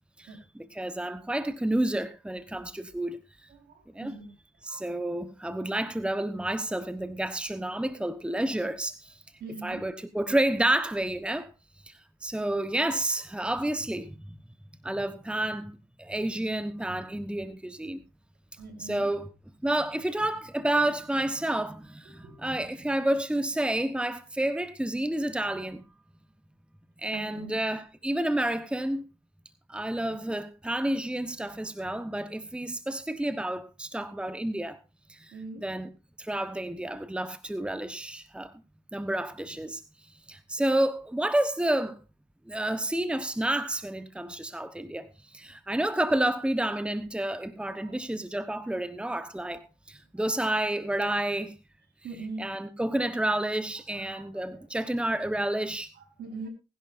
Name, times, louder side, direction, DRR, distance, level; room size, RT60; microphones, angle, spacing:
voice 1, 0.2-3.5 3.9-4.1 4.6-9.2 9.6-11.5 11.8-14.2 14.8-15.7 16.0-18.0 18.8-19.3 19.6-25.8 27.0-29.1 29.7-34.8 35.1-35.9 36.2-38.5 38.9-39.8 40.3-42.0 42.5-51.5 52.4-55.9, right 1 dB, 5° right, 1.2 m, -30 dB
voice 2, 3.6-4.3 9.4-9.8 18.6-19.1 22.2-22.4 27.1-27.6 30.0-30.1 35.3-35.6 47.7-48.0 52.0-52.4 53.9-54.5 56.0-56.5, right 3 dB, 70° right, 4.7 m, -42 dB
20.0 x 11.0 x 2.6 m
hypercardioid pair, 50°, 18 cm